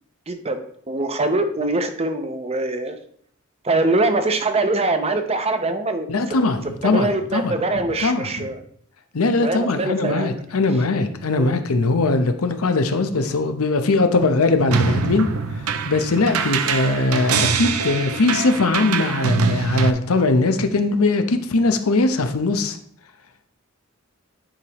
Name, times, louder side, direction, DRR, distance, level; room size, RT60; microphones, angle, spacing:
voice 1, 0.3-3.0 3.6-6.4 6.8-8.6 9.4-10.4 11.4-11.5, right 2 dB, 30° right, 8 dB, 0.7 m, -23 dB
voice 2, 6.1-7.6 8.0-8.5 9.1-15.3 15.9-22.8, left 3 dB, 85° left, 8 dB, 0.8 m, -20 dB
sound 1, 14.7-19.9, right 5 dB, 90° right, 0.6 m, -23 dB
10.0 x 4.8 x 3.0 m, 0.64 s
head